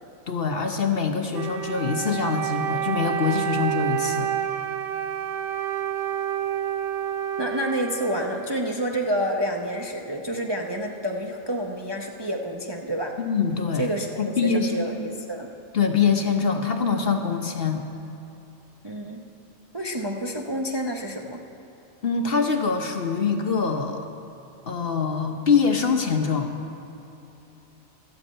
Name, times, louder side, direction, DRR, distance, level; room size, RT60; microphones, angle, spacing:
voice 1, 0.3-4.3 13.2-13.9 14.2-14.9 15.7-17.9 22.0-24.1 24.7-26.5, left 5 dB, 50° left, 4 dB, 1.0 m, -24 dB
Wind instrument woodwind instrument, 1.3-8.9, right 11 dB, 60° right, 0.6 m, -29 dB
voice 2, 7.4-13.1 13.8-15.5 18.8-19.3 19.7-21.4, equal, 25° right, 0 dB, 0.7 m, -29 dB
13.0 x 8.2 x 8.5 m, 3.0 s
omnidirectional pair, 1.4 m